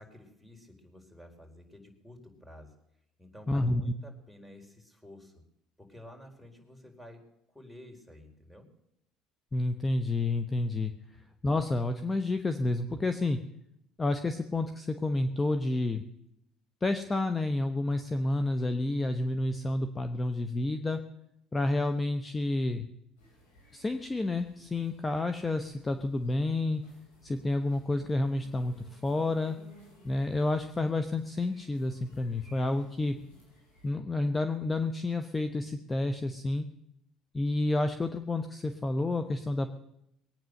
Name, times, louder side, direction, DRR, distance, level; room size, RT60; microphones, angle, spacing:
voice 1, 0.0-2.8 3.2-5.4 5.8-7.2 7.5-8.7, left 1 dB, 5° right, 2 dB, 4.2 m, -51 dB
voice 2, 3.5-3.8 9.5-10.9 11.4-13.4 14.0-16.1 16.8-21.0 21.5-22.9 23.7-26.8 27.2-29.6 30.0-33.2 33.8-36.6 37.3-39.7, left 2 dB, 20° left, 9 dB, 1.1 m, -30 dB
sound 1, 23.2-33.9, left 1 dB, 85° left, 7.0 m, -59 dB
21.0 x 9.2 x 6.6 m, 0.81 s
hypercardioid pair, 75°, 0 cm